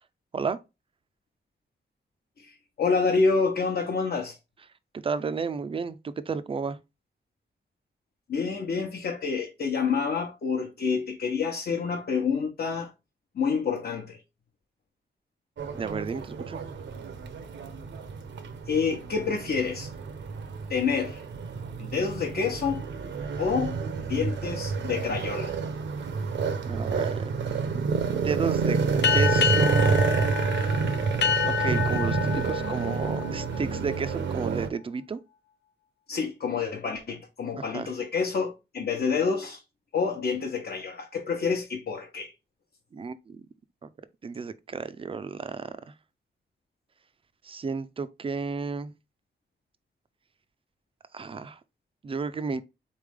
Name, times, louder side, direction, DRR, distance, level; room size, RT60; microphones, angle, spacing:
voice 1, 2.4-4.4 8.3-12.9 13.3-14.2 18.7-19.9 20.7-21.2 21.8-22.8 23.4-25.5 36.1-39.6 39.9-42.3, left 5 dB, 60° left, 0.9 m, -28 dB
voice 2, 4.9-6.8 15.7-16.6 26.7-27.3 27.7-28.8 29.1-30.4 31.5-35.2 37.6-37.9 42.9-43.4 44.2-45.9 47.4-48.9 51.1-51.6 52.0-52.6, right 5 dB, 30° right, 0.4 m, -32 dB
sound 1, 15.6-34.7, right 5 dB, 85° right, 0.7 m, -29 dB
sound 2, 29.0-34.1, left 7 dB, 75° left, 0.4 m, -28 dB
4.1 x 3.3 x 3.5 m
wide cardioid pair, 165°, 18 cm